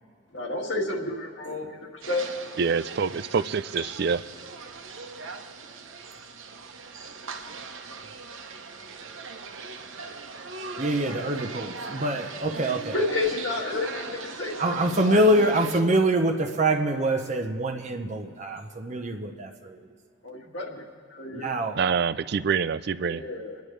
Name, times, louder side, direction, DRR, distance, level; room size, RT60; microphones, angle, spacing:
voice 1, 0.3-2.3 12.9-15.2 20.2-20.8 21.1-21.5 23.1-23.6, left 2 dB, 70° left, -1 dB, 2.1 m, -31 dB
sound 1, 2.0-15.8, right 4 dB, 85° right, 1.1 m, -39 dB
voice 2, 2.6-4.2 21.8-23.2, right 6 dB, 55° right, 15 dB, 0.4 m, -26 dB
voice 3, 10.8-13.0 14.6-19.9 21.3-21.8, right 1 dB, 35° right, 4 dB, 0.8 m, -25 dB
29.5 x 10.5 x 3.3 m, 2.3 s
head